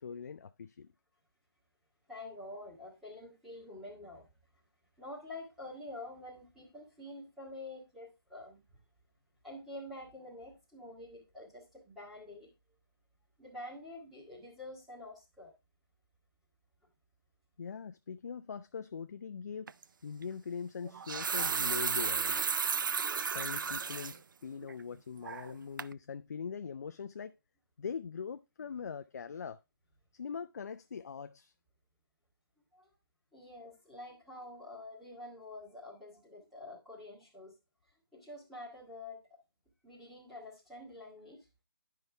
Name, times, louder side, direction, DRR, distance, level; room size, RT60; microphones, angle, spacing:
voice 1, 0.0-0.9 17.6-19.7 20.0-22.7 23.3-27.3 27.8-29.6 30.1-31.5, left 6 dB, 45° left, 0.4 m, -42 dB
voice 2, 2.1-4.3 5.0-8.6 9.4-12.5 13.4-15.5 32.7-32.9 33.3-37.5 38.1-39.2 39.8-41.5, left 2 dB, ahead, 1.8 m, -47 dB
sound 1, 19.7-19.8 20.8-24.2 24.6-24.7 25.2-25.5 25.8-25.9, right 6 dB, 55° right, 0.4 m, -33 dB
11.0 x 5.5 x 3.3 m
hypercardioid pair, 170°, 13 cm